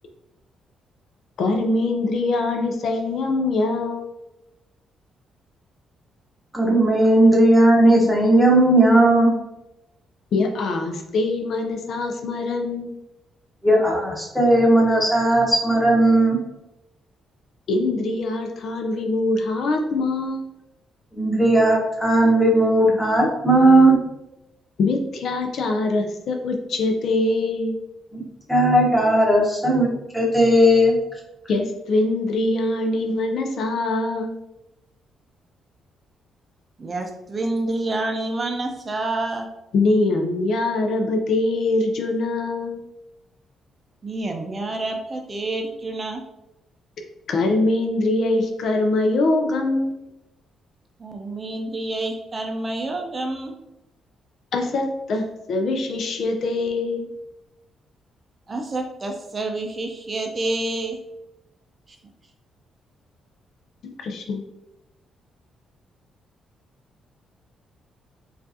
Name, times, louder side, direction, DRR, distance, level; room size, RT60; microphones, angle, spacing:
voice 1, 1.4-4.0 10.3-13.0 17.7-20.5 24.8-27.8 31.5-34.3 39.7-42.8 47.3-50.0 54.5-57.1 63.8-64.4, left 2 dB, 65° left, 4 dB, 0.5 m, -23 dB
voice 2, 6.5-9.3 13.6-16.4 21.1-24.0 28.1-28.2 28.5-29.9 30.1-31.0, right 1 dB, ahead, -2 dB, 1.0 m, -16 dB
voice 3, 36.8-39.5 44.0-46.2 51.0-53.5 58.5-61.0, right 2 dB, 30° right, 3 dB, 0.5 m, -28 dB
4.5 x 2.4 x 2.7 m, 0.91 s
cardioid pair, 100°, 0 cm